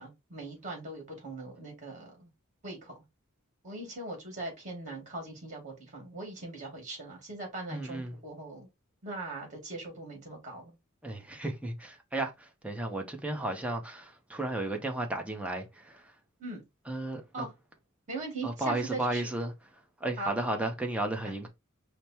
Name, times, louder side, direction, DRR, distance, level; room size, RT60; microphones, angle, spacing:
voice 1, 0.0-2.3 2.6-3.0 3.6-8.7 9.0-10.8 16.4-16.6 17.3-17.5 18.1-19.3 20.2-20.3 21.2-21.3, right 2 dB, 35° right, 2.4 m, -40 dB
voice 2, 7.7-8.2 11.0-16.0 16.9-17.2 18.4-19.5 20.0-21.5, right 2 dB, 5° right, 0.8 m, -33 dB
5.1 x 2.1 x 4.4 m
head